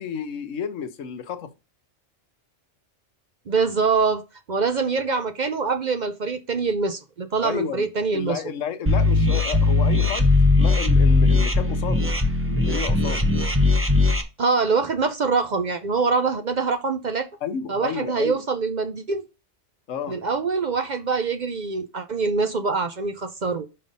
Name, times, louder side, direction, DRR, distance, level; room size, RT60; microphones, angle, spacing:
voice 1, 0.0-1.5 7.4-7.9 8.1-12.1 12.4-13.3 17.4-18.4 19.9-20.2, left 7 dB, 85° left, 1.2 m, -31 dB
voice 2, 3.5-4.2 4.5-8.4 14.4-17.3 17.7-19.3 20.1-23.7, right 4 dB, 45° right, 0.6 m, -24 dB
sound 1, 8.9-14.2, left 3 dB, 15° right, 0.7 m, -19 dB
5.5 x 5.3 x 5.3 m
omnidirectional pair, 1.3 m